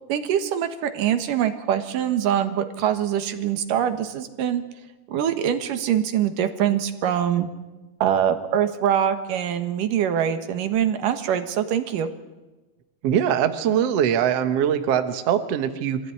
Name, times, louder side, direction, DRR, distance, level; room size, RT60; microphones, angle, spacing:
voice 1, 0.1-4.6 5.1-7.5 8.0-12.1, right 9 dB, 80° right, 9 dB, 3.1 m, -23 dB
voice 2, 13.0-16.1, right 9 dB, 60° right, 9 dB, 2.0 m, -22 dB
24.5 x 15.5 x 9.8 m, 1.1 s
omnidirectional pair, 3.8 m